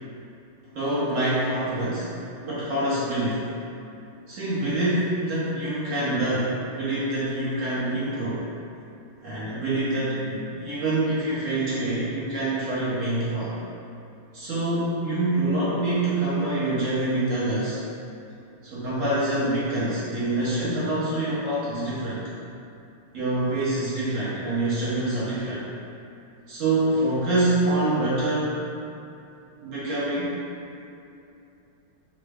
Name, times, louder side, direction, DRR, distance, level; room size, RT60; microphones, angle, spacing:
voice 1, 0.7-2.1 2.4-3.5 4.3-8.4 9.2-13.6 14.3-17.8 18.6-22.2 23.1-25.7 26.5-28.7 29.6-30.4, right 1 dB, 65° right, -10 dB, 0.8 m, -26 dB
3.7 x 2.0 x 3.4 m, 2.7 s
omnidirectional pair, 2.3 m